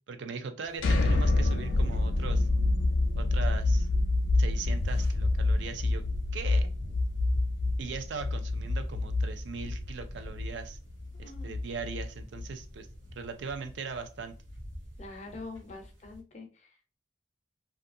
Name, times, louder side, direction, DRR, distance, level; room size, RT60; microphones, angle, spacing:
voice 1, 0.1-2.5 3.2-3.9 4.4-6.0 6.3-6.7 7.8-10.8 11.2-12.9 13.2-14.4, right 5 dB, 70° right, 7 dB, 0.4 m, -39 dB
sound 1, 0.6-16.2, equal, 85° right, 1.0 m, -45 dB
sound 2, 0.8-12.6, left 2 dB, 85° left, 0.5 m, -27 dB
voice 2, 11.2-11.5 15.0-17.0, left 3 dB, 35° left, 3 dB, 0.5 m, -45 dB
2.7 x 2.3 x 2.5 m, 0.34 s
head